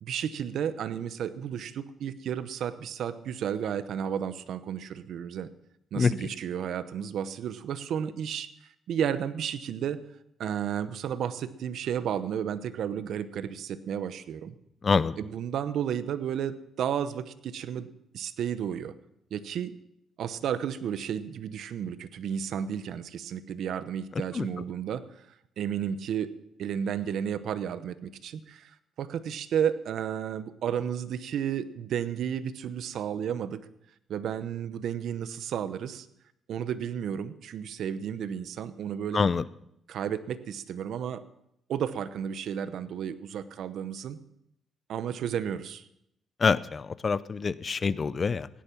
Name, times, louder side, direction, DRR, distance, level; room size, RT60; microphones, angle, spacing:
voice 1, 0.0-5.5 5.9-8.5 8.9-10.0 10.4-14.5 15.2-18.9 19.3-19.7 20.2-25.3 25.6-26.3 26.6-33.6 34.1-36.1 36.5-39.3 39.9-41.2 41.7-44.2 44.9-45.9, right 8 dB, 70° right, 13 dB, 0.9 m, -32 dB
voice 2, 14.8-15.1 24.3-24.5 39.1-39.4 46.4-48.5, left 5 dB, 35° left, 17 dB, 0.6 m, -25 dB
16.5 x 10.0 x 5.9 m, 0.77 s
cardioid pair, 90°, 0 cm